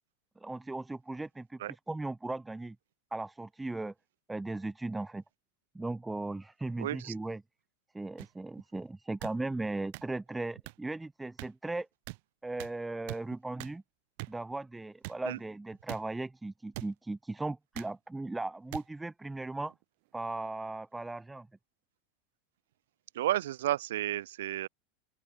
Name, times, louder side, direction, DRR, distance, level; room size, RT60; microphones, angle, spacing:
voice 1, 0.4-2.8 3.1-3.9 4.3-5.2 5.7-7.4 7.9-11.9 12.4-13.8 14.3-19.7 20.1-21.5, right 2 dB, 5° right, 2.3 m, -37 dB
voice 2, 6.8-7.1 15.3-15.4 23.1-24.7, right 13 dB, 85° right, 0.9 m, -32 dB
sound 1, 8.2-8.3 9.2-9.3 9.9-10.0 10.7-10.8 11.4-11.5 12.1-12.2 12.6-12.7 13.1-13.2 13.6-13.7 14.2-14.3 15.0-15.2 15.9-16.0 16.7-16.9 17.7-17.9 18.7-18.8 19.7-19.8, right 28 dB, 55° right, 2.1 m, -41 dB
open air
supercardioid pair, 160°, 0 cm